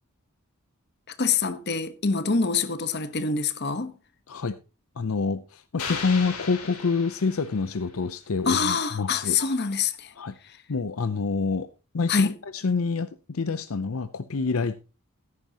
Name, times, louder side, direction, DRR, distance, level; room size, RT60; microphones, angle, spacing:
voice 1, 1.1-3.9 8.5-10.1 12.1-12.3, left 5 dB, 50° left, 1.1 m, -25 dB
voice 2, 5.0-9.4 10.2-10.3 10.7-11.7 11.9-12.3 12.5-14.8, left 4 dB, 75° left, 0.6 m, -27 dB
sound 1, 5.8-7.9, left 5 dB, 90° left, 3.2 m, -36 dB
15.5 x 9.7 x 2.9 m
head